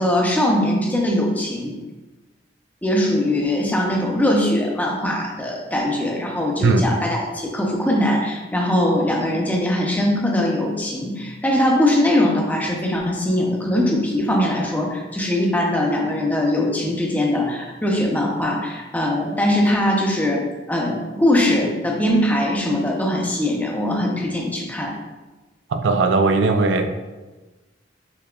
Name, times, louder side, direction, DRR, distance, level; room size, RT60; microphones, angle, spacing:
voice 1, 0.0-1.8 2.8-24.9, left 1 dB, 10° left, -1 dB, 0.6 m, -21 dB
voice 2, 25.7-26.9, right 3 dB, 75° right, 8 dB, 0.4 m, -18 dB
6.7 x 2.9 x 2.3 m, 1.2 s
head